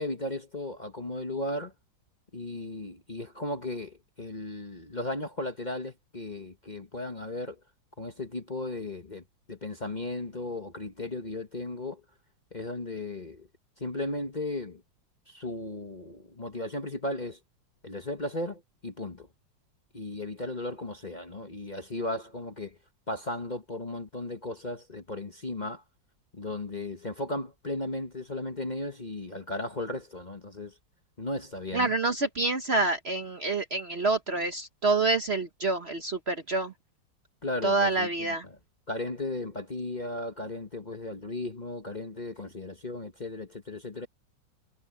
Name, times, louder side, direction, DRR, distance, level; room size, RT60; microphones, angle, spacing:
voice 1, 0.0-1.7 2.3-7.6 8.0-9.2 9.5-12.0 12.5-13.5 13.8-14.8 15.3-17.4 17.8-19.3 19.9-22.8 23.1-25.8 26.3-30.7 31.2-31.9 37.4-38.6 38.9-44.1, left 2 dB, 25° left, 1.2 m, -36 dB
voice 2, 31.7-36.7 37.6-38.4, right 3 dB, 40° right, 1.1 m, -27 dB
omnidirectional pair, 2.0 m